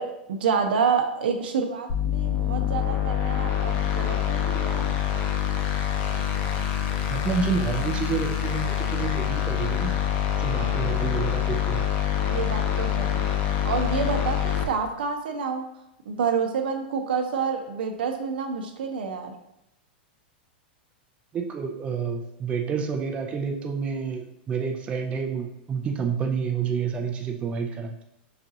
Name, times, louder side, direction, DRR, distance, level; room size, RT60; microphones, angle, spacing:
voice 1, 0.0-5.0 10.6-11.0 12.2-13.3 13.7-15.6 16.1-19.3, right 6 dB, 80° right, 5 dB, 0.7 m, -28 dB
sound 1, 1.9-14.6, left 10 dB, 40° left, 0.6 m, -26 dB
voice 2, 7.1-10.0 10.4-11.9 21.3-28.1, right 6 dB, 20° right, 3 dB, 0.4 m, -29 dB
5.8 x 2.4 x 2.7 m, 0.85 s
hypercardioid pair, 125°, 5 cm